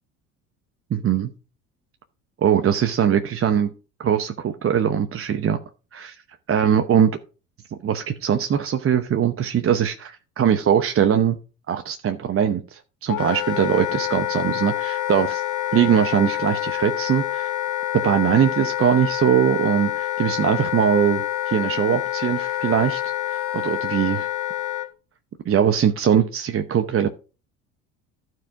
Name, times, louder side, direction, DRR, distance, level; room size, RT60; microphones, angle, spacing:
voice 1, 0.9-1.3 2.4-3.7 4.0-5.6 5.9-6.2 6.5-7.2 7.7-11.4 11.7-15.4 15.7-17.5 17.9-23.0 23.3-24.3 25.5-27.1, right 8 dB, 35° right, 7 dB, 0.9 m, -21 dB
Wind instrument woodwind instrument, 13.1-24.9, left 13 dB, 45° left, 1.5 m, -27 dB
12.5 x 4.7 x 4.9 m, 0.35 s
hypercardioid pair, 70°, 41 cm